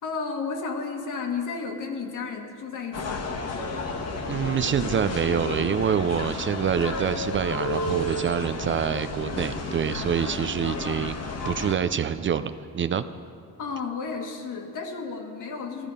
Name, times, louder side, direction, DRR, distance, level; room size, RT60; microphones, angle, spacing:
voice 1, 0.0-3.4 13.6-15.9, left 5 dB, 65° left, 3 dB, 1.6 m, -33 dB
sound 1, 2.9-11.7, left 2 dB, 50° left, 1.3 m, -32 dB
voice 2, 4.3-13.0, right 8 dB, 35° right, 12 dB, 0.4 m, -26 dB
14.0 x 12.5 x 5.1 m, 2.3 s
cardioid pair, 130°, 33 cm